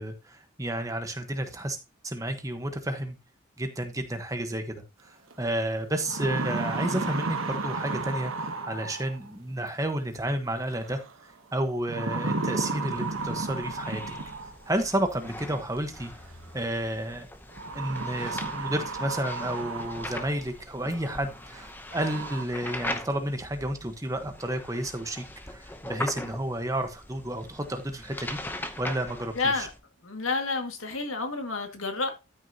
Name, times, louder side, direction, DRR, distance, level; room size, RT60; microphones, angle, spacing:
voice 1, 0.0-1.8 2.0-3.2 3.6-11.0 11.5-14.1 14.6-16.1 16.5-17.3 17.7-28.4 28.8-29.7, right 1 dB, 15° right, 1.1 m, -31 dB
sound 1, 5.3-5.4 5.9-9.3 10.7-11.1 11.9-14.7 15.9-16.0 17.5-20.4 20.9-21.0 21.5-21.6 21.9-22.4, right 3 dB, 85° right, 1.2 m, -33 dB
sound 2, 12.8-29.8, left 1 dB, 10° left, 0.7 m, -41 dB
voice 2, 29.4-29.7 30.0-32.1, left 3 dB, 85° left, 2.0 m, -29 dB
13.0 x 6.3 x 2.8 m
head